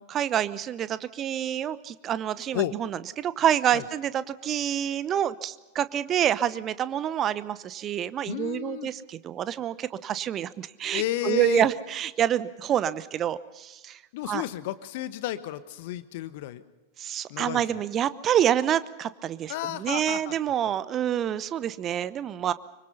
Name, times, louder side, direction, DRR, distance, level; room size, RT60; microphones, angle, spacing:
voice 1, 0.0-14.0 14.3-14.4 17.0-22.5, right 10 dB, 30° right, 16 dB, 0.9 m, -27 dB
voice 2, 8.3-8.9 10.9-11.7 14.1-16.6 17.3-17.8 19.5-20.3, left 14 dB, 50° left, 14 dB, 1.3 m, -32 dB
25.0 x 24.5 x 5.6 m, 1.1 s
figure-of-eight pair, 90°, 0 cm